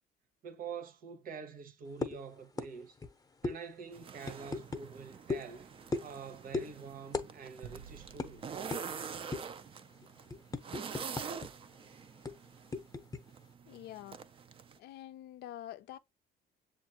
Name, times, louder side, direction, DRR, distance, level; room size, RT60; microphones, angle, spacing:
voice 1, 0.4-3.0 3.4-5.7 6.0-8.4, right 6 dB, 55° right, 1.0 m, -46 dB
sound 1, 2.0-2.2 2.6-2.7 3.0-3.1 3.4-3.6 4.2-4.8 5.3-5.5 5.9-6.2 6.5-6.7 7.1-7.3 7.6-7.7 8.2-8.3 8.7-8.8 9.3-9.6 10.0-11.5 11.7-11.8 12.3-13.2, left 3 dB, 20° left, 0.7 m, -36 dB
sound 2, 3.9-14.8, right 6 dB, 30° right, 0.4 m, -46 dB
sound 3, 7.6-10.1, right 7 dB, 90° right, 0.6 m, -54 dB
voice 2, 13.7-14.2 14.8-16.0, left 12 dB, 75° left, 0.5 m, -46 dB
7.1 x 2.5 x 2.8 m
cardioid pair, 110°, 17 cm